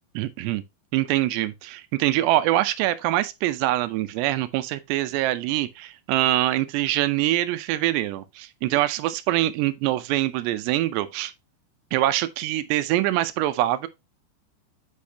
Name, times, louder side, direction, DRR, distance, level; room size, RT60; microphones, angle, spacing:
voice 1, 0.2-0.6 0.9-11.3 11.9-13.9, right 15 dB, 80° right, 2.7 m, -24 dB
8.5 x 5.1 x 2.7 m
omnidirectional pair, 5.0 m